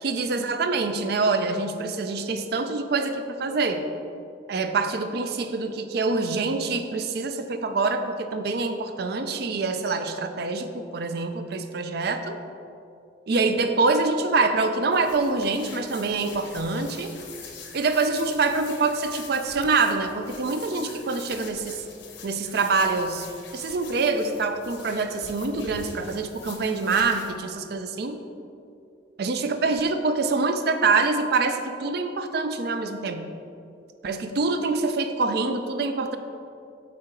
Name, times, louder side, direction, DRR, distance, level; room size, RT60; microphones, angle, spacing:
voice 1, 0.0-3.8 4.5-10.7 10.9-12.4 13.3-17.1 17.7-21.8 22.2-23.3 23.5-28.2 29.2-33.3 34.0-36.2, right 3 dB, 55° right, 8 dB, 0.4 m, -25 dB
sound 1, 14.9-27.3, left 5 dB, 75° left, 0.9 m, -44 dB
8.5 x 3.7 x 4.5 m, 2.6 s
head